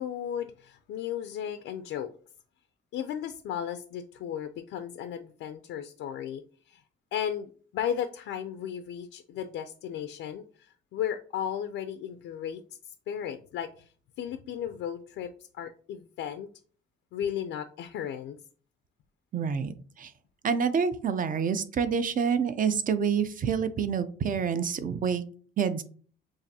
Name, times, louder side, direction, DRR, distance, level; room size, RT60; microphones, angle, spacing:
voice 1, 0.0-2.1 2.9-6.8 7.1-12.6 13.1-13.9 14.2-16.5 17.1-18.4, left 9 dB, 80° left, 8 dB, 0.4 m, -35 dB
voice 2, 19.3-20.1 20.4-25.2 25.6-25.8, right 6 dB, 45° right, 12 dB, 0.6 m, -27 dB
7.1 x 2.5 x 2.7 m, 0.43 s
cardioid pair, 90°, 20 cm